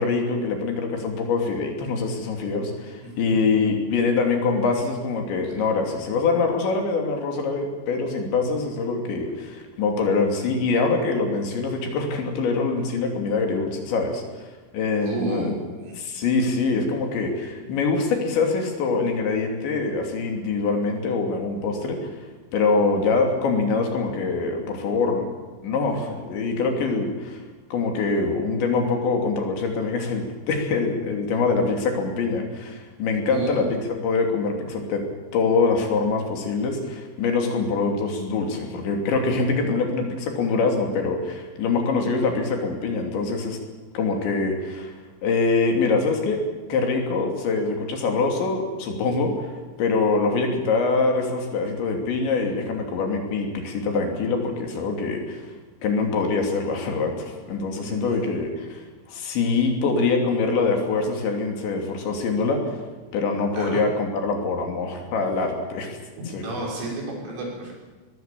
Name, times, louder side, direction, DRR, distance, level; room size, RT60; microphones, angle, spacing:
voice 1, 0.0-14.2 14.7-15.5 16.0-22.1 22.5-25.2 25.6-27.4 27.7-35.0 35.3-43.6 43.9-44.9 45.2-46.4 46.7-49.5 49.8-55.5 55.8-58.8 59.1-62.8 63.1-66.0 66.3-66.5, left 4 dB, 70° left, 3 dB, 5.1 m, -24 dB
voice 2, 3.0-3.4 5.4-5.5 15.0-16.0 33.3-33.6 57.8-58.3 63.6-63.8 66.4-67.7, right 2 dB, 90° right, -2 dB, 8.6 m, -31 dB
22.0 x 21.5 x 7.6 m, 1.3 s
omnidirectional pair, 5.5 m